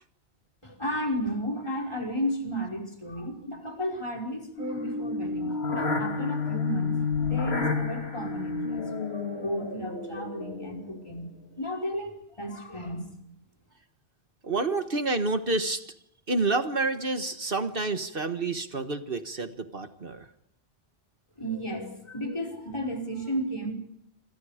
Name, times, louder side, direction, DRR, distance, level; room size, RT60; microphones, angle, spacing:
voice 1, 0.6-8.9 9.3-13.1 21.4-23.7, equal, 30° left, 5 dB, 5.4 m, -33 dB
sound 1, 4.6-11.0, left 4 dB, 85° left, 3.0 m, -30 dB
voice 2, 14.4-15.8 16.3-20.2, right 3 dB, 60° right, 8 dB, 1.7 m, -28 dB
27.5 x 27.0 x 5.1 m, 0.75 s
omnidirectional pair, 1.1 m